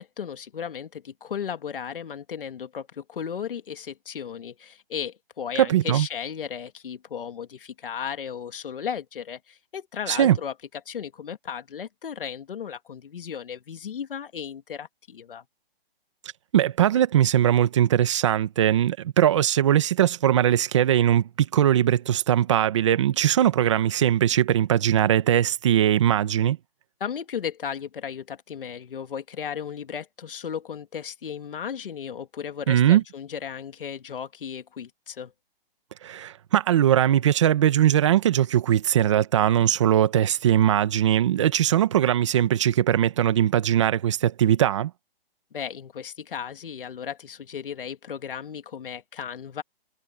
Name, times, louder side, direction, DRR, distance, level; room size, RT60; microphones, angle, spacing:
voice 1, 0.0-10.5 10.9-15.4 27.0-35.3 45.5-49.6, left 7 dB, 65° left, 2.5 m, -35 dB
voice 2, 5.6-6.1 10.1-10.4 16.5-26.6 32.7-33.0 36.0-44.9, right 11 dB, 30° right, 1.3 m, -20 dB
hypercardioid pair, 170°, 30 cm